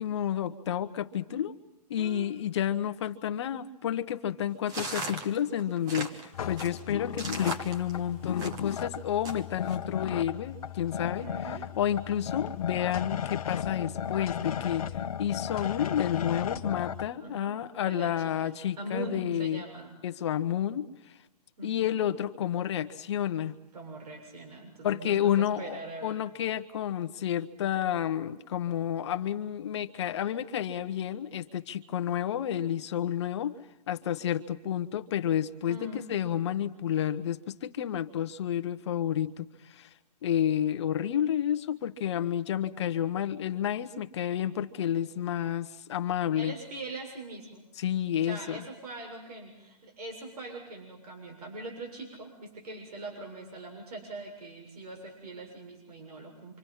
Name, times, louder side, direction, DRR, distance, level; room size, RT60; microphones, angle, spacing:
voice 1, 0.0-1.5 1.9-14.8 15.2-19.6 20.0-21.1 21.6-23.5 24.8-25.8 26.0-33.5 33.9-39.9 40.2-46.5 47.8-48.6, left 10 dB, 45° left, 10 dB, 1.1 m, -30 dB
voice 2, 2.0-2.3 11.2-11.7 17.2-17.6 17.9-20.0 21.6-22.0 23.7-26.2 35.7-36.1 46.3-47.7 48.3-56.6, right 2 dB, 65° right, 2 dB, 7.0 m, -42 dB
sound 1, 4.7-8.8 9.2-9.8, right 2 dB, 20° right, 1.4 m, -38 dB
sound 2, 6.3-17.1, left 8 dB, 60° left, 1.1 m, -35 dB
26.5 x 26.5 x 5.8 m, 0.89 s
hypercardioid pair, 155°, 21 cm